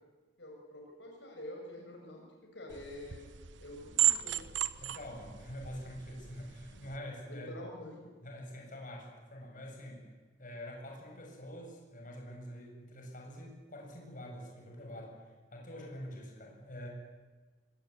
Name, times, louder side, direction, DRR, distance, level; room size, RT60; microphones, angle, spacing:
voice 1, 0.4-3.3 3.6-4.5 7.3-8.1, left 1 dB, 75° left, 0 dB, 6.8 m, -47 dB
sound 1, 2.7-7.0, right 12 dB, 85° right, 1.0 m, -35 dB
voice 2, 4.8-7.6 8.2-10.1 10.4-16.9, equal, 45° left, 0 dB, 7.9 m, -46 dB
24.0 x 24.0 x 9.8 m, 1.3 s
head